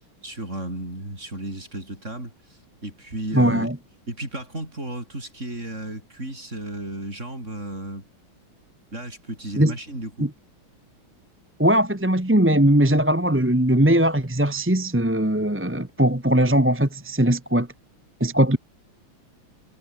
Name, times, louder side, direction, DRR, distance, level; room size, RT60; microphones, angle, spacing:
voice 1, 0.2-3.7 4.1-8.1 8.9-10.3, right 1 dB, 35° right, 8.2 m, -34 dB
voice 2, 3.3-3.7 9.6-9.7 10.2-10.3 11.6-17.7 18.2-18.6, right 1 dB, 5° right, 1.5 m, -20 dB
omnidirectional pair, 2.3 m